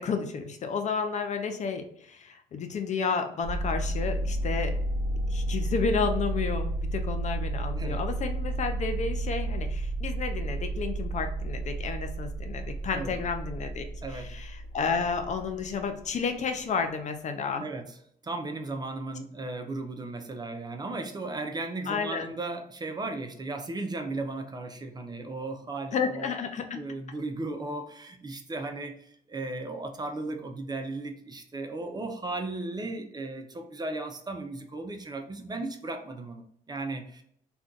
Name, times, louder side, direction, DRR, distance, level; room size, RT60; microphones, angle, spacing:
voice 1, 0.0-4.8 5.3-13.9 14.1-17.7 21.9-22.3 25.9-26.8, left 5 dB, 45° left, 7 dB, 0.5 m, -31 dB
sound 1, 3.4-16.1, right 1 dB, 65° right, 0.9 m, -32 dB
voice 2, 7.8-8.1 12.9-13.2 14.0-14.3 17.6-18.0 18.2-26.3 26.7-37.2, right 2 dB, 25° right, 5 dB, 0.5 m, -36 dB
2.5 x 2.3 x 3.7 m, 0.68 s
cardioid pair, 80°, 17 cm